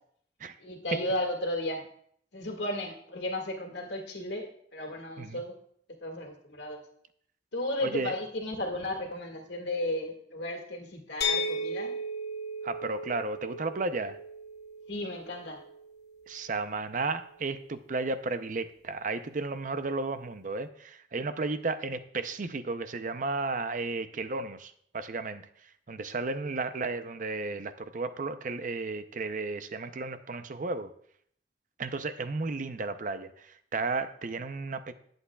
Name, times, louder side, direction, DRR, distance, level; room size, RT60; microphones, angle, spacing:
voice 1, 0.6-1.9 2.3-5.6 6.0-6.8 7.5-11.9 14.9-15.6, left 1 dB, 85° left, 2 dB, 1.9 m, -34 dB
voice 2, 7.8-8.1 12.6-14.2 16.3-30.9 31.8-34.9, right 3 dB, 45° right, 11 dB, 0.6 m, -33 dB
sound 1, 11.2-17.0, left 1 dB, 70° left, 1.1 m, -36 dB
19.5 x 7.9 x 2.3 m, 0.64 s
head